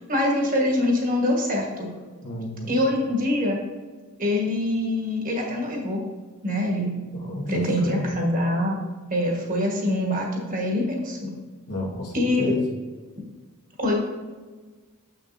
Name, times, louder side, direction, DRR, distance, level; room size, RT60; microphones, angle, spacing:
voice 1, 0.0-1.9 2.7-3.6 4.2-6.0 6.4-6.9 7.5-8.8 9.1-11.3 12.1-12.5 13.8-13.9, left 1 dB, 40° right, -1 dB, 1.4 m, -24 dB
voice 2, 2.2-2.8 7.1-8.1 11.7-12.6, left 1 dB, 90° left, -3 dB, 1.8 m, -32 dB
7.5 x 6.0 x 2.7 m, 1.4 s
head